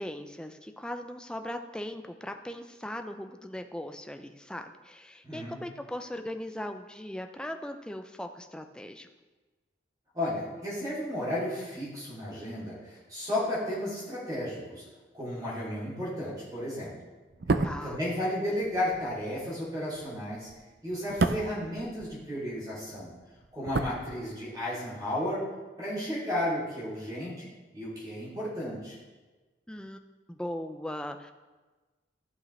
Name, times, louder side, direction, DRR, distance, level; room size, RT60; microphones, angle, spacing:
voice 1, 0.0-9.1 17.6-18.0 29.7-30.0 30.3-31.3, left 1 dB, 5° left, 6 dB, 0.4 m, -39 dB
voice 2, 5.2-5.6 10.1-14.8 15.1-16.9 17.5-20.5 20.8-23.1 23.5-25.4 25.8-27.5 27.7-29.0, left 1 dB, 20° right, -9 dB, 2.9 m, -33 dB
sound 1, 17.3-22.6 22.9-24.7 25.0-25.1, right 3 dB, 60° right, 0.5 m, -32 dB
14.5 x 6.3 x 3.2 m, 1.2 s
head